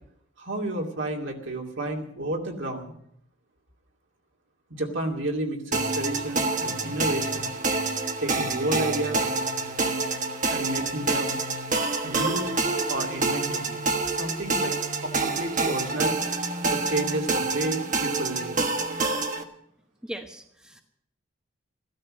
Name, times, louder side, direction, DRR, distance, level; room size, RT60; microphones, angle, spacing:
voice 1, 0.4-2.9 4.7-7.5 8.2-9.2 10.5-11.4 12.0-12.5 12.9-13.8 14.2-14.7 15.0-16.2 16.7-18.6, right 1 dB, 60° right, 1 dB, 2.6 m, -31 dB
sound 1, 5.7-19.4, right 3 dB, 35° right, 1.3 m, -27 dB
voice 2, 20.0-20.8, right 1 dB, 5° right, 2 dB, 1.1 m, -39 dB
14.5 x 13.0 x 6.4 m, 0.69 s
head